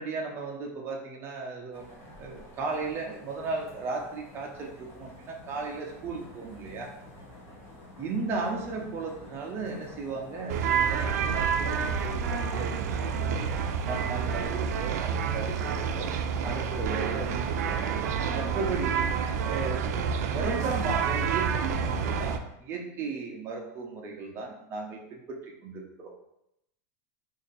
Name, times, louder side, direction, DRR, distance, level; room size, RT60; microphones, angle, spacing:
voice 1, 0.0-1.8 2.2-6.9 8.0-13.5 13.8-16.1 16.4-17.9 18.3-19.1 19.4-26.1, right 4 dB, 25° right, 0 dB, 0.6 m, -36 dB
sound 1, 1.7-12.4, left 1 dB, 25° left, 0.9 m, -49 dB
sound 2, 10.5-22.4, right 6 dB, 80° right, 0.4 m, -28 dB
2.8 x 2.6 x 4.0 m, 0.81 s
supercardioid pair, 160°, 9 cm